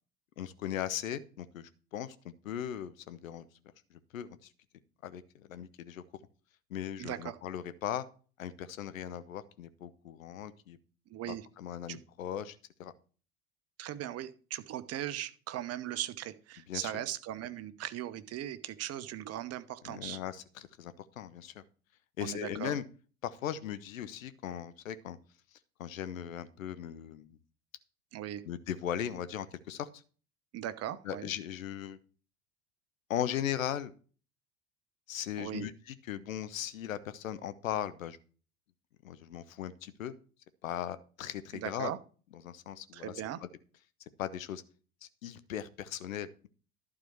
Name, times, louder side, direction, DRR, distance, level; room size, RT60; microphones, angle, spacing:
voice 1, 0.4-3.5 4.1-4.4 5.0-6.0 6.7-8.0 8.4-10.8 11.3-12.9 16.7-17.0 19.8-21.6 22.2-22.8 23.2-25.2 25.8-27.4 28.4-29.9 31.0-32.0 33.1-33.9 35.1-38.2 39.0-40.1 40.6-41.9 42.4-43.1 43.4-43.5 44.2-44.6 45.0-46.5, left 10 dB, 75° left, 14 dB, 0.9 m, -38 dB
voice 2, 7.0-7.4 11.1-11.5 11.9-12.0 13.8-20.2 22.2-22.8 28.1-28.4 30.5-31.3 35.4-35.7 41.5-42.0 42.9-43.4, right 12 dB, 35° right, 13 dB, 1.0 m, -39 dB
11.5 x 4.9 x 7.0 m, 0.39 s
figure-of-eight pair, 70°, 41 cm